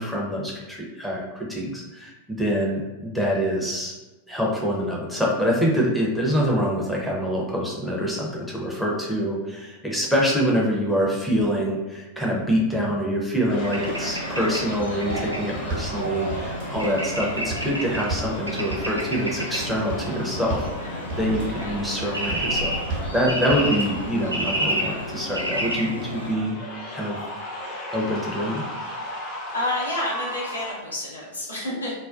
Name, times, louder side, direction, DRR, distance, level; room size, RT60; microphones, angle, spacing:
voice 1, 0.0-3.9 4.3-26.6 26.9-27.2 27.9-28.7, equal, ahead, -4 dB, 0.5 m, -25 dB
sound 1, 13.5-30.7, left 1 dB, 40° left, 0.7 m, -37 dB
Bird / Traffic noise roadway noise, 13.6-26.4, right 1 dB, 85° right, 0.3 m, -30 dB
sound 2, 14.8-15.3 15.5-16.0 16.3-16.8 17.2-17.7 17.9-18.4 18.7-19.2 19.6-20.1 20.3-20.8 21.1-21.6 22.0-22.5 22.7-23.2 23.5-24.0 24.4-24.5, right 2 dB, 50° right, 0.7 m, -33 dB
voice 2, 29.5-31.9, left 1 dB, 80° left, -5 dB, 0.8 m, -29 dB
2.4 x 2.1 x 2.3 m, 1.1 s
figure-of-eight pair, 90°, 0 cm